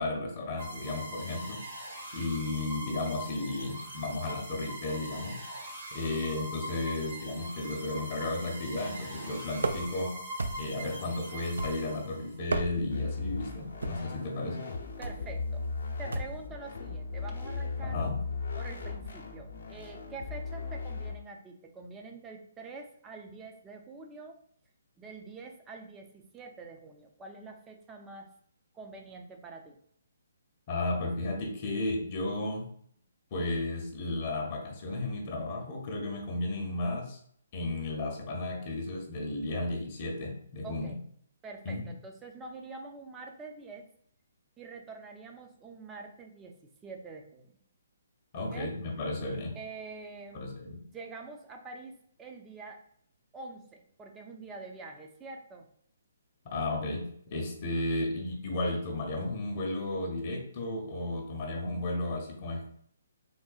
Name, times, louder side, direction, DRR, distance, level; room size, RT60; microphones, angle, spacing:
voice 1, 0.0-1.6 2.1-5.4 5.9-10.1 10.6-14.7 17.8-18.2 30.7-32.6 33.3-37.2 37.5-40.9 41.7-41.8 48.3-49.6 50.3-50.8 56.4-57.0 57.3-62.7, left 2 dB, 40° left, 1 dB, 0.7 m, -33 dB
sound 1, 0.6-12.4, right 1 dB, 55° right, 1.1 m, -42 dB
sound 2, 9.6-10.0 10.4-10.9 11.6-12.0 12.4-13.0 13.8-14.1 15.0-15.3 16.1-16.4, right 3 dB, 80° right, 0.3 m, -34 dB
sound 3, 12.9-21.1, left 4 dB, 75° left, 0.7 m, -37 dB
voice 2, 15.0-15.6 16.0-18.0 18.6-24.4 25.0-28.3 28.7-29.8 40.6-41.0 41.4-43.8 44.6-47.6 48.3-48.8 49.5-50.5 50.8-52.8 53.3-55.7, right 3 dB, 15° right, 3 dB, 0.4 m, -46 dB
3.7 x 2.1 x 2.3 m, 0.64 s
hypercardioid pair, 145°, 0 cm